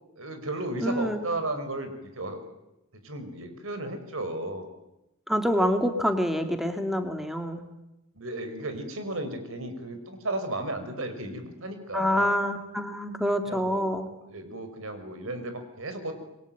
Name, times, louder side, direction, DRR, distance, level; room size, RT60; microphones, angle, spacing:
voice 1, 0.2-2.5 3.0-4.7 8.1-12.4 13.4-16.1, right 2 dB, 70° right, 8 dB, 5.7 m, -34 dB
voice 2, 0.8-1.2 5.3-7.6 11.9-14.1, equal, ahead, 6 dB, 2.3 m, -26 dB
27.5 x 23.0 x 9.3 m, 0.92 s
head